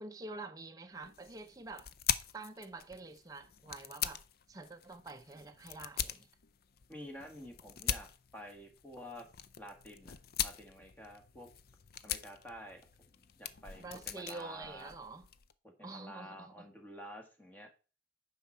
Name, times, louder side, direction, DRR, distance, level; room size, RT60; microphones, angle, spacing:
voice 1, 0.0-1.9 2.3-4.2 4.5-6.3 13.8-15.3 15.8-16.7, right 3 dB, 20° right, 0.6 m, -47 dB
sound 1, 1.0-15.5, left 10 dB, 55° left, 0.5 m, -42 dB
voice 2, 6.9-9.2 9.6-10.1 10.4-11.5 12.0-12.9 13.4-14.9 15.6-17.7, equal, 10° left, 1.6 m, -50 dB
9.3 x 5.5 x 4.4 m
head